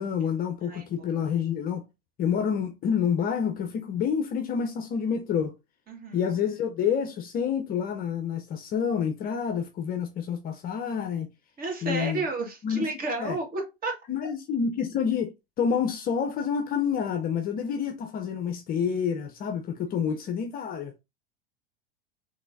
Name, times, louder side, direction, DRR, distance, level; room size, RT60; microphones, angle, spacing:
voice 1, 0.0-1.8 2.2-5.5 6.1-11.3 11.8-12.2 12.6-12.9 13.2-13.4 14.1-15.3 15.6-20.9, left 7 dB, 30° left, 0.6 m, -28 dB
voice 2, 0.7-1.1 5.9-6.2 11.6-14.0, right 3 dB, 30° right, 1.8 m, -32 dB
6.0 x 3.2 x 2.6 m
figure-of-eight pair, 90°, 29 cm